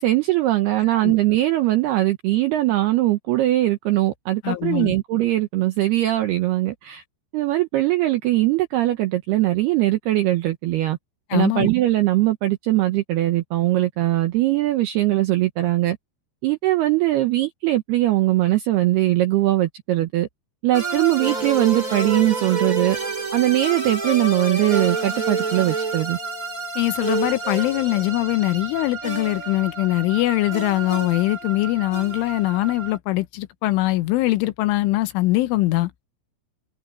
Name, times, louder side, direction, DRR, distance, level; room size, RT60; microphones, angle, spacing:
voice 1, 0.0-7.0 7.3-11.0 11.3-16.0 16.4-20.3 20.6-23.0 23.3-26.2, right 16 dB, 80° right, 2.3 m, -21 dB
voice 2, 4.4-5.0 11.3-11.7 26.8-35.9, left 17 dB, 75° left, 3.2 m, -22 dB
sound 1, 20.7-33.0, right 3 dB, 15° right, 4.7 m, -28 dB
omnidirectional pair, 5.9 m